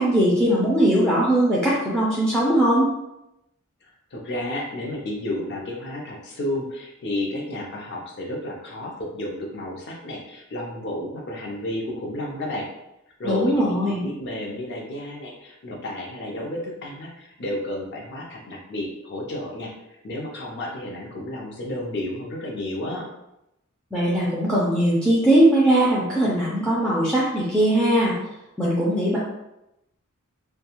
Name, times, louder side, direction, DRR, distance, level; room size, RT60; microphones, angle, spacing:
voice 1, 0.0-2.9 13.2-14.0 23.9-28.1 28.6-29.2, right 1 dB, 5° left, -7 dB, 0.4 m, -20 dB
voice 2, 3.8-12.7 13.2-19.7 20.0-23.1, left 1 dB, 50° left, 0 dB, 0.6 m, -32 dB
2.3 x 2.2 x 2.9 m, 0.88 s
head